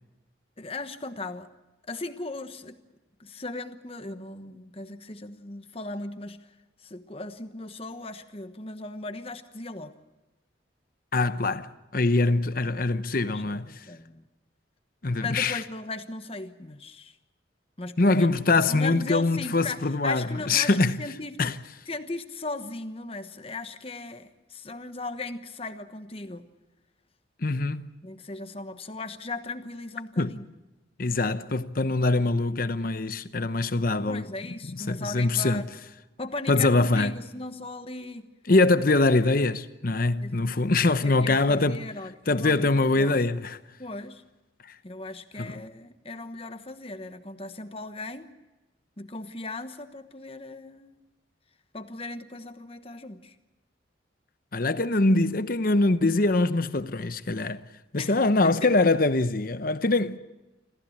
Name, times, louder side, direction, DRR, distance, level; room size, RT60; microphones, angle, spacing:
voice 1, 0.6-1.5 1.9-2.8 3.2-9.9 12.1-12.2 13.3-14.2 15.2-17.2 17.8-18.3 18.7-21.5 21.9-26.5 28.0-30.4 34.1-35.7 36.2-38.3 40.2-40.4 41.0-43.2 43.8-44.2 44.8-48.3 49.0-51.0 51.7-53.3 58.0-58.7, left 2 dB, 30° left, 1.2 m, -38 dB
voice 2, 11.1-13.7 15.0-15.6 18.0-21.0 21.4-21.6 27.4-27.9 30.2-30.3 31.0-34.2 34.9-35.6 36.5-37.1 38.5-41.8 42.3-43.6 45.4-45.6 54.5-57.6 57.9-60.2, left 2 dB, 50° left, 0.9 m, -23 dB
26.5 x 15.0 x 8.6 m
head